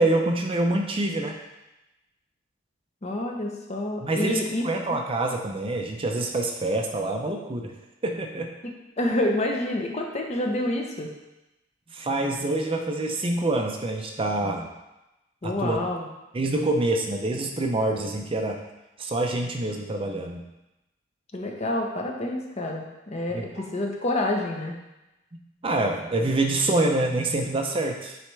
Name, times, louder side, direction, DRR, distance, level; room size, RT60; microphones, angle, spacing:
voice 1, 0.0-1.3 4.0-7.7 8.0-8.5 11.9-14.7 15.4-15.8 16.3-18.6 19.0-20.4 23.3-23.7 25.6-28.2, right 2 dB, 30° right, 3 dB, 0.5 m, -26 dB
voice 2, 3.0-4.6 8.6-11.1 15.4-16.1 21.3-24.7, left 1 dB, 35° left, 1 dB, 0.8 m, -28 dB
9.1 x 3.3 x 3.2 m, 0.97 s
head